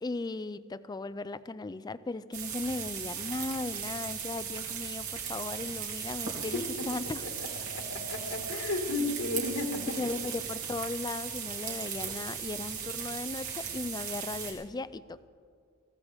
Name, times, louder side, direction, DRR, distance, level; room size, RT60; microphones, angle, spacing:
voice 1, 0.0-7.2 9.9-15.3, left 3 dB, 20° left, 16 dB, 0.3 m, -37 dB
sound 1, 2.3-14.5, right 7 dB, 85° right, 2.7 m, -37 dB
voice 2, 7.7-10.1, left 2 dB, 75° left, 2 dB, 1.9 m, -33 dB
22.0 x 16.0 x 3.5 m, 2.3 s
head